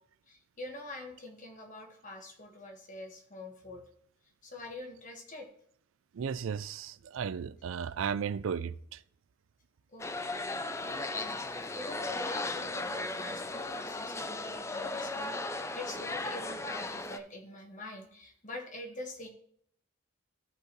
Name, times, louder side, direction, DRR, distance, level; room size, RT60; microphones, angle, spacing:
voice 1, 0.3-3.8 4.4-5.5 9.9-19.3, left 2 dB, 40° left, 1.5 m, -45 dB
voice 2, 6.1-9.0, right 7 dB, 70° right, 0.4 m, -35 dB
sound 1, 10.0-17.2, left 2 dB, 15° left, 0.4 m, -36 dB
14.0 x 5.2 x 3.1 m
head